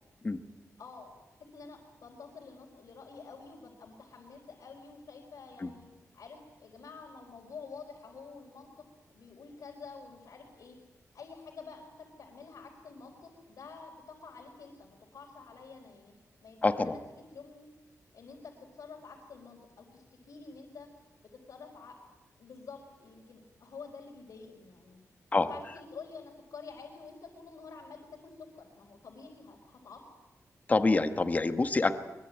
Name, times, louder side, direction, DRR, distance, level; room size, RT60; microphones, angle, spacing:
voice 1, 0.8-5.9 6.1-10.8 11.1-16.1 16.4-17.0 17.3-17.7 18.1-21.1 21.5-22.0 22.4-25.0 25.3-30.0, left 4 dB, 80° left, -2 dB, 4.3 m, -49 dB
voice 2, 16.6-17.0 25.3-25.5 30.7-31.9, left 3 dB, 25° left, 9 dB, 1.3 m, -26 dB
23.5 x 22.5 x 9.0 m, 1.1 s
wide cardioid pair, 155°, 6 cm